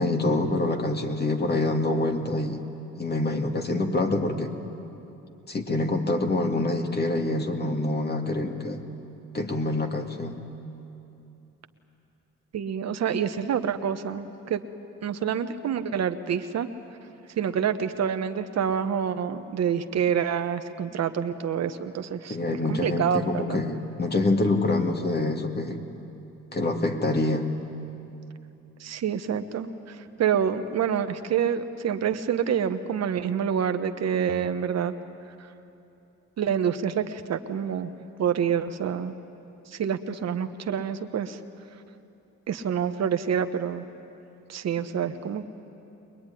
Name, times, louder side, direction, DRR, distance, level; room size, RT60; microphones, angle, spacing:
voice 1, 0.0-2.6 3.0-4.5 5.5-8.8 9.3-10.4 22.3-25.8 26.5-27.5, left 2 dB, 35° left, 4 dB, 2.3 m, -26 dB
voice 2, 12.5-14.6 15.0-16.7 17.4-22.4 22.7-23.6 28.8-34.9 36.4-37.9 38.2-39.1 39.7-41.4 42.5-43.9 44.5-45.4, right 8 dB, 60° right, 8 dB, 1.1 m, -27 dB
23.5 x 21.0 x 10.0 m, 2.9 s
cardioid pair, 90°, 30 cm